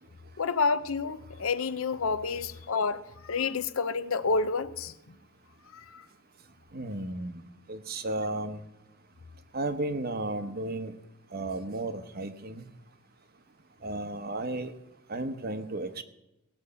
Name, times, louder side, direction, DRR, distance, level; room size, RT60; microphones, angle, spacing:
voice 1, 0.4-4.9 5.7-6.0, left 4 dB, 65° left, 14 dB, 0.7 m, -29 dB
voice 2, 6.7-7.4 7.7-8.6 9.5-10.9 11.3-12.6 13.8-14.7 15.1-16.0, right 2 dB, 45° right, 10 dB, 0.9 m, -33 dB
17.5 x 6.3 x 6.7 m, 0.91 s
head